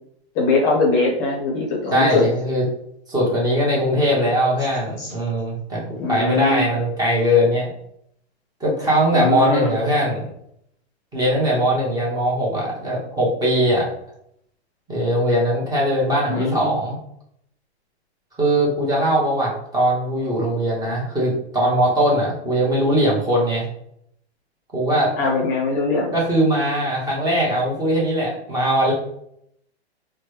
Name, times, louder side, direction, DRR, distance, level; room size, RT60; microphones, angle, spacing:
voice 1, 0.3-2.2 5.0-5.1 6.0-6.6 9.1-9.7 16.2-16.8 25.2-26.1, left 3 dB, 30° left, -1 dB, 0.7 m, -21 dB
voice 2, 1.9-2.6 3.1-5.8 6.1-7.7 8.6-10.2 11.1-13.9 14.9-17.0 18.4-23.7 24.7-25.1 26.1-28.9, equal, 10° right, -5 dB, 0.8 m, -20 dB
3.1 x 2.1 x 3.2 m, 0.72 s
hypercardioid pair, 145°, 33 cm